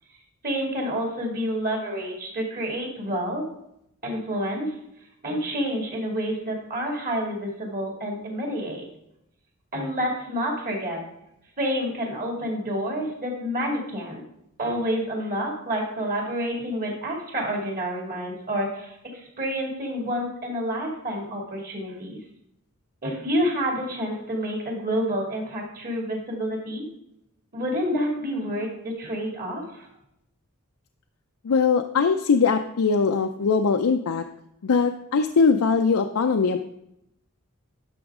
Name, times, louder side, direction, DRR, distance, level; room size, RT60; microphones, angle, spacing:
voice 1, 0.4-3.5 4.0-4.7 5.2-8.9 9.7-11.0 11.6-14.2 14.6-22.2 23.0-26.8 27.5-29.9, equal, 45° right, 0 dB, 2.4 m, -28 dB
voice 2, 31.4-34.2 34.6-36.6, left 5 dB, 80° left, 6 dB, 0.5 m, -21 dB
11.0 x 6.2 x 3.6 m, 0.81 s
head